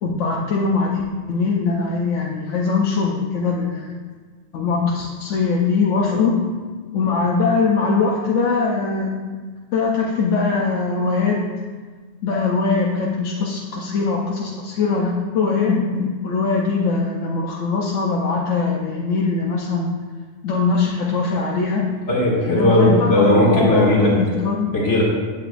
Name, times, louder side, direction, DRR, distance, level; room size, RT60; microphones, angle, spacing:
voice 1, 0.0-1.0 1.3-3.9 4.5-6.4 6.9-9.1 9.7-11.5 12.2-20.0 20.4-21.9 22.4-24.8, left 4 dB, 90° left, -2 dB, 1.1 m, -21 dB
voice 2, 22.1-24.1 24.7-25.0, equal, 75° left, -5 dB, 2.1 m, -17 dB
8.3 x 7.9 x 2.5 m, 1.5 s
omnidirectional pair, 1.2 m